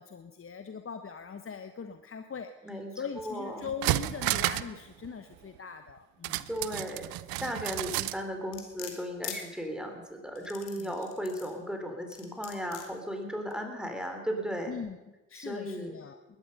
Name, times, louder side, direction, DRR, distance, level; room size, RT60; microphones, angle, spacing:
voice 1, 0.0-6.5 10.8-11.1 14.7-15.0 15.3-16.2, left 6 dB, 35° left, 8 dB, 1.1 m, -41 dB
voice 2, 2.6-3.7 6.5-7.1 7.4-14.7 15.3-15.9, equal, ahead, 3 dB, 3.8 m, -36 dB
sound 1, 3.2-3.3 3.6-4.8 5.0-5.1 6.2-8.2 8.5-8.6, right 16 dB, 70° right, 0.6 m, -31 dB
sound 2, 8.5-9.4 10.4-11.5 12.1-12.9 13.5-13.6, left 10 dB, 80° left, 1.9 m, -42 dB
20.5 x 11.0 x 5.5 m, 1.1 s
hypercardioid pair, 40°, 36 cm